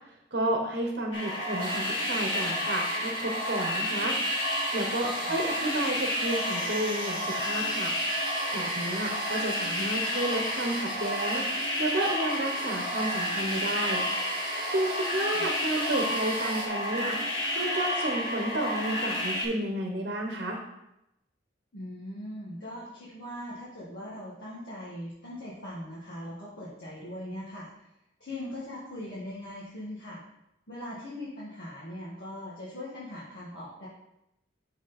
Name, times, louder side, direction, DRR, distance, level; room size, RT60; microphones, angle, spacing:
voice 1, 0.3-4.2 4.7-7.9 8.5-11.5 11.8-14.0 14.7-17.2 17.5-20.6, right 1 dB, 55° right, 1 dB, 1.1 m, -31 dB
sound 1, 1.1-19.4, left 1 dB, 85° left, 2.0 m, -31 dB
sound 2, 1.6-16.7, right 3 dB, 25° right, 1.4 m, -39 dB
voice 2, 21.7-27.9 28.2-30.2 30.7-33.9, left 1 dB, 60° left, -8 dB, 1.7 m, -40 dB
6.4 x 6.2 x 4.2 m, 0.85 s
head